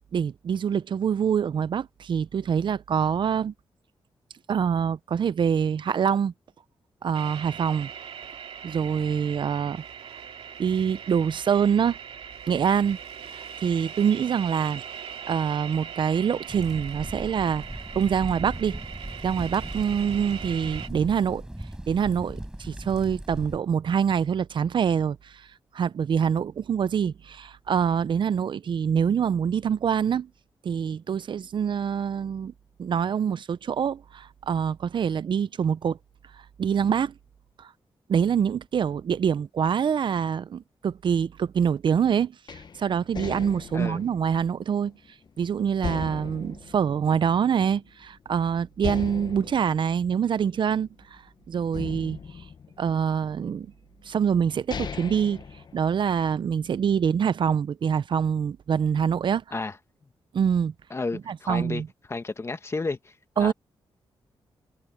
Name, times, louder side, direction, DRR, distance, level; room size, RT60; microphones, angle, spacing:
voice 1, 0.1-3.5 4.5-6.3 7.0-7.9 8.6-9.8 10.6-12.0 12.5-13.0 13.3-14.8 15.3-17.6 17.9-18.8 19.2-21.4 21.9-25.5 25.7-30.3 30.6-32.5 32.8-36.0 36.6-37.1 37.6-37.7 38.1-44.9 45.4-51.2 51.5-52.2 52.8-53.7 54.1-55.4 55.7-59.4 60.3-60.7 61.3-61.9 63.4-63.5, right 7 dB, 60° right, 0.5 m, -25 dB
sound 1, 7.1-20.9, right 7 dB, 85° right, 2.6 m, -40 dB
sound 2, 16.5-23.6, right 1 dB, 10° right, 6.4 m, -38 dB
sound 3, 42.5-45.3 45.8-47.8 48.1-48.2 48.8-51.2 51.7-53.3 54.1-54.2 54.5-56.3, left 6 dB, 50° left, 1.1 m, -38 dB
voice 2, 43.7-44.1 59.5-59.8 60.9-61.8 62.1-63.5, left 3 dB, 30° left, 1.5 m, -32 dB
cardioid pair, 100°, 9 cm